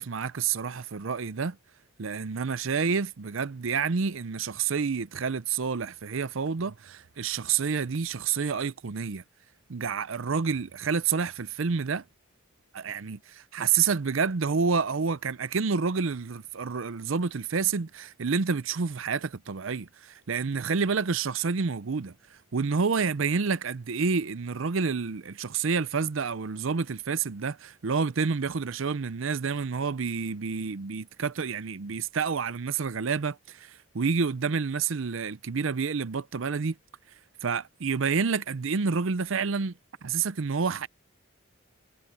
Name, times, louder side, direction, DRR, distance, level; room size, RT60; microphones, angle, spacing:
voice 1, 0.0-1.6 2.0-9.2 9.7-12.0 12.7-22.1 22.5-36.7 37.4-39.7 40.0-40.9, right 5 dB, 70° right, 0.6 m, -29 dB
head